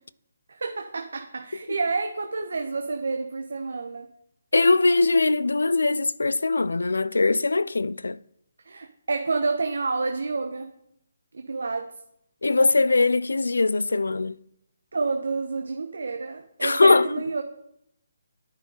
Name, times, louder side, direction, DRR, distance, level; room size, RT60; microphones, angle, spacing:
voice 1, 0.5-4.1 8.6-10.7 11.3-11.9 14.9-17.4, right 3 dB, 70° right, 1.1 m, -29 dB
voice 2, 4.5-8.2 12.4-14.4 16.6-17.1, left 3 dB, 80° left, 0.5 m, -21 dB
10.5 x 9.9 x 4.9 m
figure-of-eight pair, 150°, 0 cm